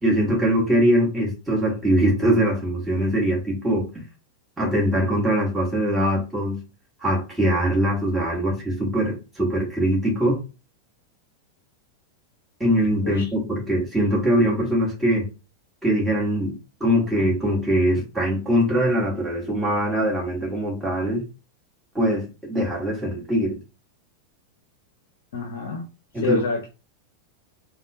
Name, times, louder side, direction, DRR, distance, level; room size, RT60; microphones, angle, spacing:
voice 1, 0.0-4.0 4.6-6.6 7.0-10.4 12.6-15.3 15.8-21.2 21.9-23.6 26.1-26.4, equal, 5° right, 1.7 m, -22 dB
voice 2, 25.3-25.9 26.2-26.7, left 4 dB, 60° left, 0.7 m, -27 dB
3.4 x 2.3 x 2.7 m
figure-of-eight pair, 90°, 0 cm